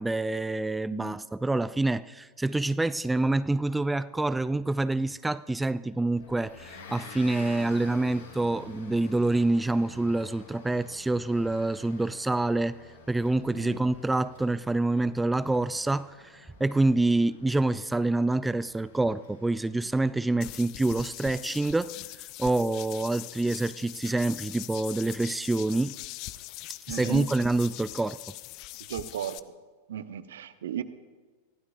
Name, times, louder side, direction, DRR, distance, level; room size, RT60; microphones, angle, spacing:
voice 1, 0.0-12.8 13.1-22.0 22.4-25.9 26.9-28.2, right 2 dB, 5° right, 0.3 m, -27 dB
Motor vehicle (road) / Engine, 6.2-20.4, left 3 dB, 65° left, 5.8 m, -49 dB
voice 2, 13.5-13.8 26.9-27.3 28.9-29.4 29.9-30.8, right 10 dB, 60° right, 0.8 m, -35 dB
sound 1, 20.4-29.4, left 17 dB, 40° left, 0.5 m, -42 dB
24.0 x 15.5 x 2.6 m
figure-of-eight pair, 90°, 0 cm